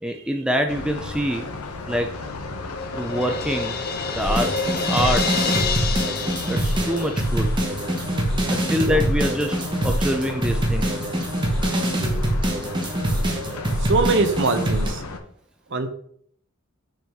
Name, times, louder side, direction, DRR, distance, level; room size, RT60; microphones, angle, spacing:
voice 1, 0.0-1.5 1.9-2.2 2.9-3.8 4.1-5.4 6.5-7.5 8.5-11.0, equal, 5° right, 4 dB, 0.3 m, -25 dB
sound 1, 0.7-15.2, left 3 dB, 80° left, 0.8 m, -35 dB
Crash cymbal, 1.9-7.6, left 5 dB, 45° left, 0.6 m, -29 dB
sound 2, 4.2-14.9, right 1 dB, 20° right, 1.1 m, -24 dB
voice 2, 13.8-15.0 15.7-15.9, right 3 dB, 55° right, 8 dB, 0.7 m, -22 dB
6.0 x 4.4 x 3.5 m, 0.63 s
head